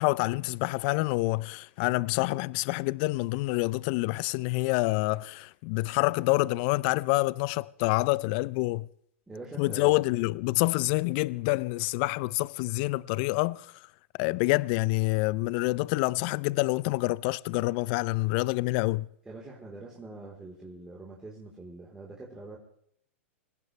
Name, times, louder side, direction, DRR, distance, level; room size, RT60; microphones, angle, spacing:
voice 1, 0.0-8.9 9.6-13.7 14.2-19.1, left 22 dB, 50° left, 0.6 m, -27 dB
voice 2, 9.3-10.0 19.3-22.6, right 2 dB, 10° right, 3.9 m, -44 dB
26.5 x 16.5 x 3.3 m
hypercardioid pair, 115°, 7 cm